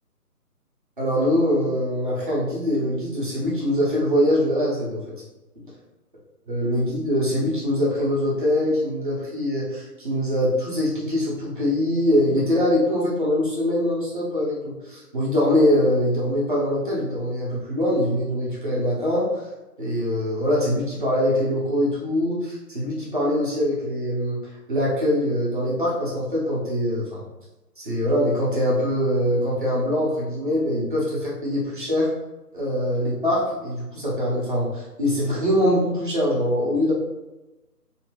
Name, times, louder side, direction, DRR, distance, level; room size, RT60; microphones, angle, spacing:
voice 1, 1.0-5.0 6.5-19.4 19.8-24.4 24.7-27.2 27.8-32.1 32.5-36.9, left 1 dB, 35° right, -6 dB, 1.0 m, -23 dB
3.4 x 2.9 x 3.1 m, 1.0 s
figure-of-eight pair, 170°, 47 cm